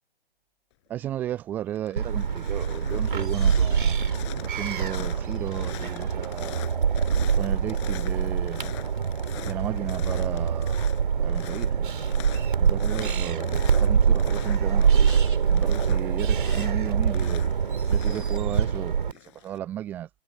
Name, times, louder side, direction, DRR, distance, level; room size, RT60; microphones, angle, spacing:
voice 1, 0.9-4.1 4.4-6.7 7.3-8.6 9.4-10.8 11.2-11.9 12.6-17.4 17.9-20.2, right 11 dB, 5° right, 0.6 m, -34 dB
sound 1, 1.0-1.4 1.7-19.6, left 20 dB, 25° left, 6.9 m, -43 dB
sound 2, 2.0-19.1, right 6 dB, 55° right, 3.1 m, -24 dB
figure-of-eight pair, 140°, 31 cm